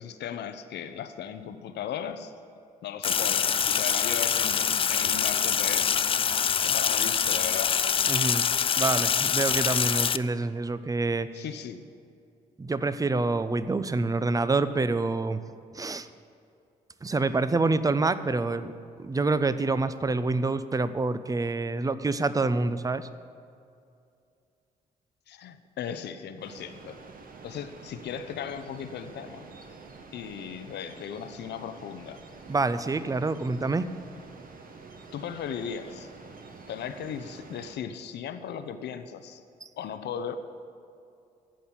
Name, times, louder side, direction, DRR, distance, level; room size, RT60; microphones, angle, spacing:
voice 1, 0.0-2.3 2.8-6.0 6.6-7.7 11.3-11.8 25.3-27.0 27.4-29.5 30.1-32.2 35.1-36.1 36.7-39.4 39.8-40.4, left 8 dB, 55° left, 10 dB, 0.7 m, -37 dB
Sink (filling or washing), 3.0-10.2, left 7 dB, 25° left, 0.3 m, -25 dB
voice 2, 8.1-8.5 8.8-11.3 12.6-15.4 15.7-16.1 17.0-18.7 19.0-23.1 32.5-33.9, right 3 dB, 15° right, 14 dB, 0.6 m, -27 dB
sound 1, 26.4-37.8, right 4 dB, 45° right, 1.3 m, -48 dB
15.0 x 5.6 x 8.4 m, 2.5 s
figure-of-eight pair, 40°, 21 cm